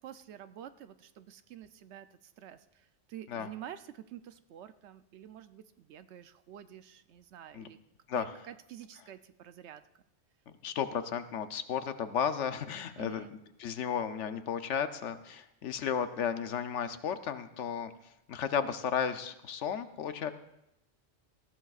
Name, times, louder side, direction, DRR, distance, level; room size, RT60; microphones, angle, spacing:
voice 1, 0.0-7.8 8.1-9.8 13.0-13.3, right 10 dB, 70° right, 11 dB, 0.9 m, -49 dB
voice 2, 10.6-13.3 13.6-17.9 18.3-20.3, left 8 dB, 80° left, 10 dB, 1.0 m, -33 dB
18.5 x 14.5 x 2.4 m, 0.83 s
omnidirectional pair, 1.2 m